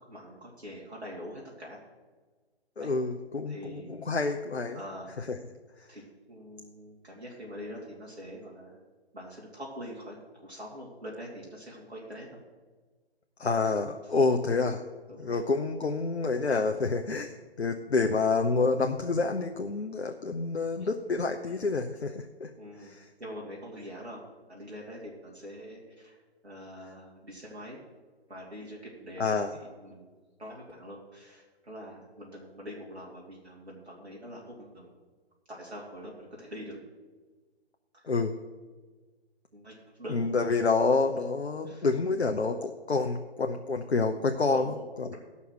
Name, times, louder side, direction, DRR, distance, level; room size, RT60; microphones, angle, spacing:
voice 1, 0.0-1.8 2.8-2.9 3.5-4.0 4.7-5.1 5.9-8.8 9.1-12.4 15.1-15.4 18.0-18.1 20.8-20.9 22.6-22.9 23.2-24.2 24.5-26.2 26.4-27.8 28.3-29.5 29.8-34.9 35.5-36.8 37.9-38.2 39.5-40.4 41.6-41.8 44.5-44.8, equal, 85° right, -4 dB, 2.9 m, -44 dB
voice 2, 2.8-4.8 5.2-5.4 13.4-14.8 15.2-22.5 22.8-23.1 29.2-29.5 38.0-38.3 40.1-45.1, left 4 dB, 85° left, 5 dB, 0.8 m, -28 dB
14.0 x 5.6 x 6.3 m, 1.3 s
figure-of-eight pair, 140°, 32 cm